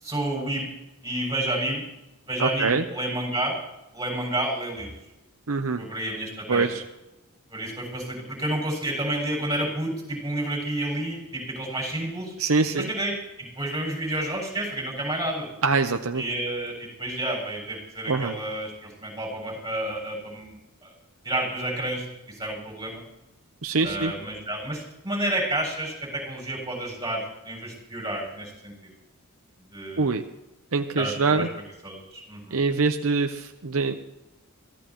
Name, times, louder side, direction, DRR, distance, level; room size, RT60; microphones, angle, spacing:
voice 1, 0.0-0.7 1.0-1.9 2.3-3.6 3.9-4.9 5.8-6.6 7.5-12.3 12.8-15.5 16.2-20.6 20.8-20.9 21.2-23.0 23.8-28.9 29.7-30.2 31.0-31.4 31.8-32.6, right 1 dB, 15° right, -2 dB, 7.2 m, -30 dB
voice 2, 2.4-2.8 5.5-5.8 6.5-6.8 12.4-12.9 15.6-16.2 18.1-18.4 23.6-24.1 30.0-30.2 30.7-31.5 32.5-33.9, right 4 dB, 70° right, 6 dB, 0.8 m, -24 dB
24.0 x 16.0 x 3.1 m, 0.97 s
head